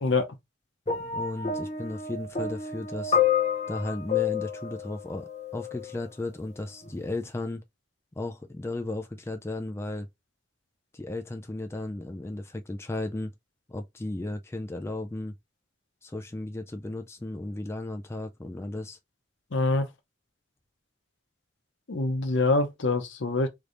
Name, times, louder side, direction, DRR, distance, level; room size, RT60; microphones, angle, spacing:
sound 1, 0.9-6.0 6.9-7.0, left 7 dB, 35° left, 0.7 m, -29 dB
voice 1, 1.0-3.2 3.7-7.6 8.2-10.1 10.9-13.3 13.7-15.3 16.0-19.0, left 2 dB, 15° left, 0.3 m, -35 dB
voice 2, 19.5-19.9 21.9-23.5, left 3 dB, 85° left, 0.7 m, -25 dB
3.3 x 3.1 x 2.5 m
head